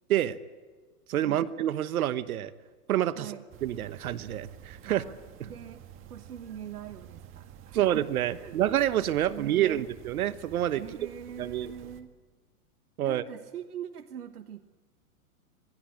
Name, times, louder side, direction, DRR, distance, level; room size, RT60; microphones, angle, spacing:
voice 1, 1.1-2.5 2.9-3.3 3.6-5.0 7.7-10.8 11.4-11.7 13.0-13.2, right 12 dB, 70° right, 14 dB, 1.2 m, -27 dB
voice 2, 3.1-3.5 4.8-5.2 5.4-5.8 6.1-7.9 8.3-8.6 9.3-9.9 10.8-12.1 13.0-14.7, right 9 dB, 90° right, 9 dB, 1.4 m, -42 dB
sound 1, 3.5-12.0, right 9 dB, 30° right, 1.7 m, -50 dB
27.0 x 19.5 x 8.6 m, 1.4 s
hypercardioid pair, 135°, 45 cm